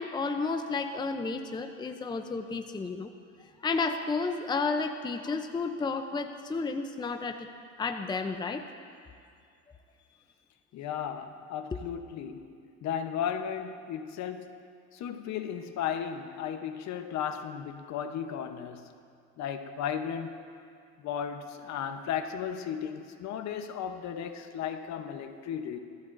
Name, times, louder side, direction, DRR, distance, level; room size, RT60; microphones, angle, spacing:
voice 1, 0.0-3.1 3.6-7.5 7.8-8.6 11.7-11.8, left 4 dB, 15° left, 7 dB, 0.6 m, -32 dB
voice 2, 10.7-12.5 12.8-14.6 14.9-18.9 19.4-20.4 21.0-25.8, left 8 dB, 60° left, 8 dB, 0.9 m, -35 dB
19.5 x 14.0 x 2.6 m, 2.2 s
cardioid pair, 110°, 32 cm